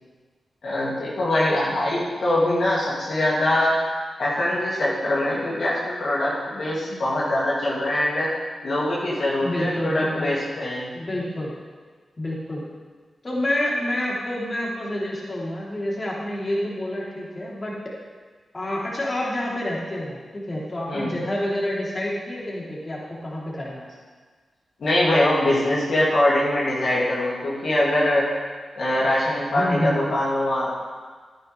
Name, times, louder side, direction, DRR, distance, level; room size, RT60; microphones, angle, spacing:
voice 1, 0.6-3.8 4.2-8.3 8.6-10.9 20.9-21.1 24.8-28.3 28.7-30.7, left 1 dB, 70° left, -7 dB, 2.8 m, -23 dB
voice 2, 9.4-10.3 10.9-11.5 12.2-12.7 13.2-17.7 18.5-23.9 29.5-30.1, left 1 dB, 40° left, -5 dB, 3.5 m, -28 dB
10.5 x 10.0 x 3.4 m, 1.5 s
supercardioid pair, 40°, 0 cm